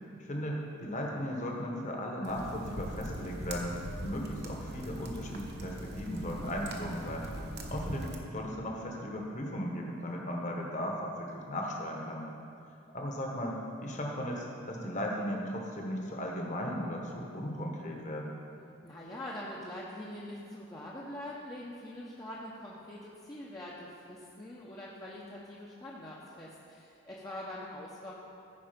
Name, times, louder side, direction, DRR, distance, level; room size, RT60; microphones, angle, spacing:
voice 1, 0.2-7.3 7.7-12.3 12.9-13.6 13.8-18.3, equal, 35° left, 0 dB, 1.3 m, -36 dB
sound 1, 2.2-8.2, right 1 dB, 55° right, 1.0 m, -41 dB
voice 2, 18.8-28.1, left 1 dB, 20° left, -5 dB, 0.8 m, -44 dB
15.0 x 5.0 x 5.1 m, 2.6 s
head